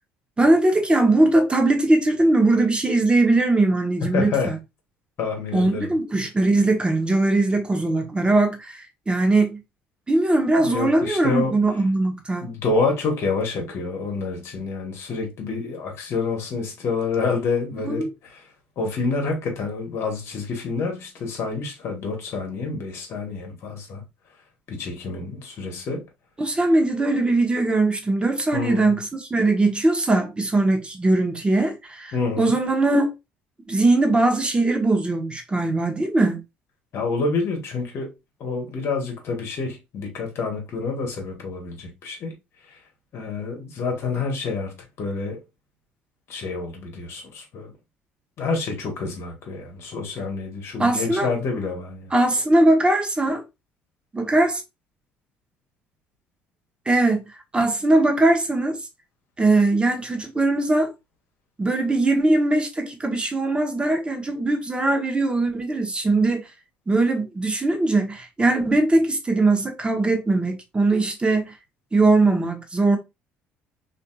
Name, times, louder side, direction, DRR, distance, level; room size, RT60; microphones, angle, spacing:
voice 1, 0.4-4.6 5.5-9.6 10.1-12.5 17.8-18.1 26.4-33.1 33.7-36.4 50.8-51.3 52.1-53.4 54.1-54.6 56.9-57.2 57.5-58.8 59.4-60.9 61.6-66.5 66.9-71.6 71.9-73.0, right 2 dB, 20° right, 0.9 m, -20 dB
voice 2, 4.0-4.5 5.2-5.9 10.6-11.6 12.4-18.4 18.8-24.0 24.7-26.0 28.5-29.0 32.1-32.5 36.9-38.1 38.4-42.3 42.7-42.8 43.1-45.4 46.3-47.7 48.4-52.1, left 4 dB, 55° left, 1.0 m, -28 dB
2.6 x 2.5 x 2.2 m
hypercardioid pair, 60°, 5 cm